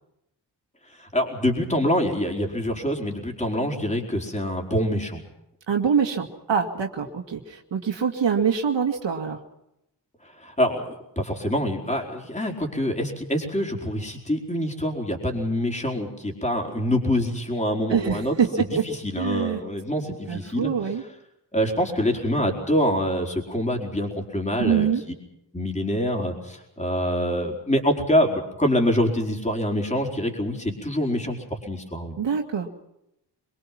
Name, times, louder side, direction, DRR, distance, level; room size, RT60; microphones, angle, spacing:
voice 1, 1.0-5.2 10.2-20.7 21.5-24.9 25.5-32.2, equal, 15° left, 1 dB, 4.7 m, -25 dB
voice 2, 5.7-9.4 17.9-18.8 19.2-19.6 20.3-21.0 24.6-25.0 32.2-32.7, right 7 dB, 80° right, 3 dB, 2.2 m, -24 dB
25.0 x 22.0 x 6.0 m, 0.84 s
wide cardioid pair, 105°, 43 cm